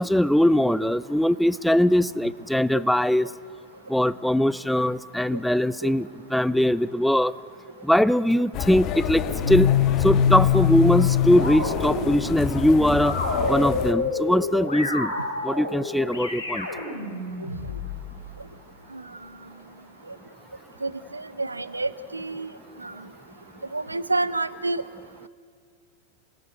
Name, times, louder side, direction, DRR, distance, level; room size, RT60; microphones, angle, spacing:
voice 1, 0.0-3.3 3.9-7.3 7.8-9.7 10.0-13.2 13.5-15.1 15.4-16.7, left 1 dB, ahead, 18 dB, 0.5 m, -21 dB
sound 1, 8.5-13.9, left 9 dB, 35° left, 1.5 m, -30 dB
sound 2, 9.4-18.0, left 6 dB, 70° left, 4.9 m, -25 dB
voice 2, 20.8-22.5 22.8-23.0 23.7-24.8, right 2 dB, 80° right, 16 dB, 0.8 m, -29 dB
27.5 x 18.5 x 9.0 m, 2.3 s
figure-of-eight pair, 90°, 0 cm